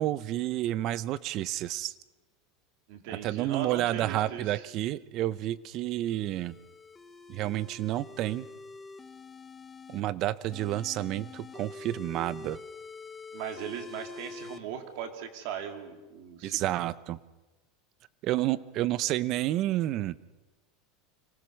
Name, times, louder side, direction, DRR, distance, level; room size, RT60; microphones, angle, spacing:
voice 1, 0.0-1.9 3.2-6.5 7.3-8.5 9.9-12.6 16.4-17.2 18.2-20.2, right 14 dB, 35° right, 19 dB, 0.6 m, -30 dB
voice 2, 2.9-4.6 13.3-16.8, right 8 dB, 55° right, 7 dB, 2.6 m, -39 dB
sound 1, 6.1-10.0 10.5-14.6, left 4 dB, 15° left, 0.8 m, -46 dB
25.0 x 18.5 x 6.5 m, 1.2 s
supercardioid pair, 165°, 0 cm